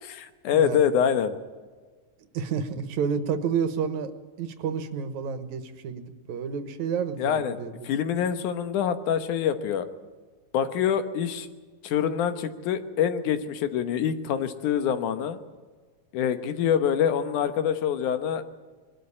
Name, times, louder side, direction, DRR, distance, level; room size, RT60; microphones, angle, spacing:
voice 1, 0.0-1.4 7.2-7.6 7.8-9.9 10.5-11.5 11.8-15.4 16.1-18.4, left 8 dB, 85° left, 10 dB, 2.6 m, -25 dB
voice 2, 2.3-4.1 4.4-7.9, right 6 dB, 75° right, 11 dB, 2.5 m, -30 dB
21.5 x 13.0 x 9.7 m, 1.4 s
omnidirectional pair, 3.5 m